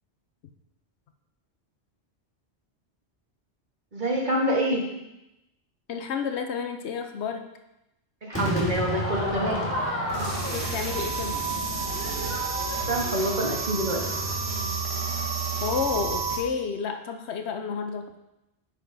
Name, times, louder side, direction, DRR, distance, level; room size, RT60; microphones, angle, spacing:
voice 1, 3.9-4.9 8.2-9.7 12.9-14.0, equal, 45° right, -2 dB, 1.5 m, -26 dB
voice 2, 5.9-7.5 10.5-11.4 15.6-18.1, left 6 dB, 75° left, 6 dB, 0.9 m, -30 dB
Crowd / Fireworks, 8.3-13.6, equal, 10° left, 1.4 m, -32 dB
sound 1, 10.1-16.4, right 4 dB, 65° right, 1.4 m, -30 dB
9.6 x 6.6 x 2.7 m, 0.92 s
omnidirectional pair, 1.2 m